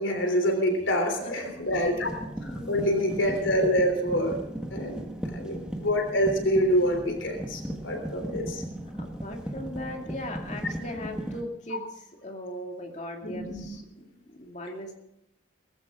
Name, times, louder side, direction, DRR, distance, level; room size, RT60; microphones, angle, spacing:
voice 1, 0.0-2.1 2.4-4.4 4.7-8.6 13.2-13.6, equal, 80° left, 4 dB, 3.3 m, -26 dB
sound 1, 0.8-0.9 1.4-11.4, equal, 5° right, 1.5 m, -37 dB
voice 2, 2.4-3.1 4.6-5.6 8.8-14.9, left 1 dB, 40° left, 2 dB, 2.4 m, -39 dB
19.0 x 14.5 x 3.7 m, 0.85 s
head